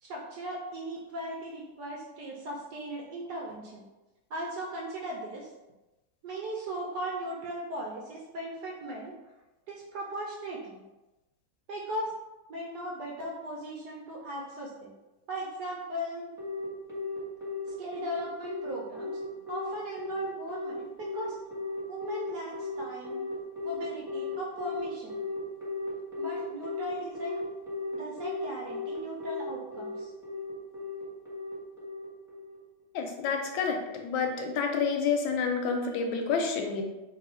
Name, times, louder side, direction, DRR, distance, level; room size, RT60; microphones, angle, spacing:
voice 1, 0.0-3.8 4.3-5.5 6.2-9.1 9.7-10.8 11.7-12.1 12.5-14.9 15.3-16.3 17.8-19.2 19.5-21.4 21.9-23.2 23.6-25.2 26.2-27.4 27.9-30.1, right 1 dB, 75° right, -2 dB, 0.9 m, -38 dB
Telephone, 16.4-32.6, left 4 dB, ahead, 1.0 m, -36 dB
voice 2, 32.9-36.8, left 5 dB, 75° left, 3 dB, 1.2 m, -29 dB
3.0 x 2.6 x 4.1 m, 1.1 s
omnidirectional pair, 2.3 m